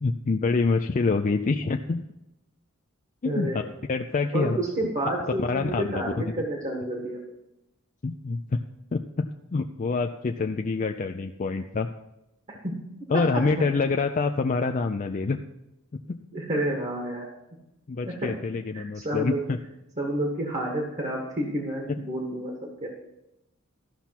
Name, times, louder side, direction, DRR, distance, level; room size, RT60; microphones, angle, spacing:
voice 1, 0.0-2.0 3.2-3.6 3.9-4.6 5.4-5.9 8.0-8.6 8.9-11.9 13.1-15.4 16.1-16.2 17.9-19.6 21.9-22.0, left 4 dB, 40° left, 5 dB, 0.4 m, -26 dB
voice 2, 3.2-3.7 4.3-7.2 12.5-12.7 13.1-13.4 16.3-17.3 18.0-18.3 18.7-19.4 20.0-22.9, right 1 dB, 35° right, 0 dB, 1.7 m, -30 dB
13.5 x 5.8 x 5.9 m, 0.91 s
head